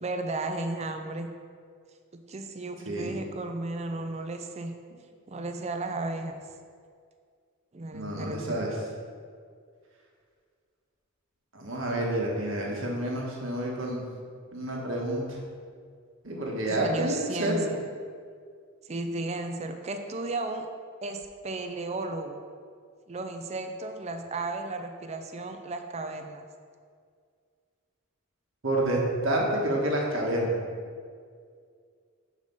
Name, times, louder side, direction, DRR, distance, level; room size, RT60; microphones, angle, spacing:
voice 1, 0.0-1.3 2.3-4.7 5.3-6.4 7.7-8.7 16.7-17.8 18.9-20.7 21.0-22.4 23.1-26.5, right 2 dB, 30° right, 6 dB, 0.4 m, -34 dB
voice 2, 7.9-8.7 11.5-14.0 14.5-15.4 16.2-17.6 28.6-30.6, right 1 dB, 70° right, -1 dB, 1.4 m, -29 dB
6.6 x 5.0 x 5.3 m, 2.1 s
head